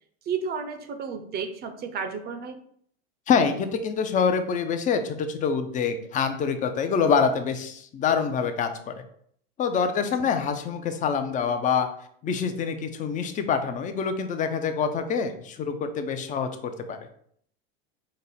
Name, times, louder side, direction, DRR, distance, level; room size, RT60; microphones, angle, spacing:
voice 1, 0.3-2.6 10.0-10.3, right 5 dB, 30° right, 7 dB, 0.6 m, -32 dB
voice 2, 3.3-9.0 9.6-11.9 12.2-17.0, left 6 dB, 25° left, 8 dB, 0.5 m, -26 dB
5.2 x 2.0 x 4.0 m, 0.64 s
supercardioid pair, 120°, 31 cm